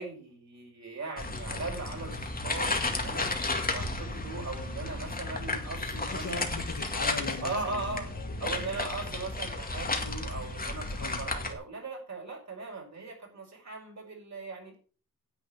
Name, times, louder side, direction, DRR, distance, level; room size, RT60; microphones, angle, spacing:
voice 1, 0.0-3.3 3.7-6.5 7.4-8.1 8.4-14.7, right 3 dB, 50° right, 5.3 m, -39 dB
sound 1, 1.2-11.5, left 2 dB, 25° left, 2.1 m, -33 dB
voice 2, 6.1-8.8 11.0-11.3, left 5 dB, 55° left, 1.9 m, -41 dB
10.0 x 8.0 x 6.0 m
wide cardioid pair, 105°, 36 cm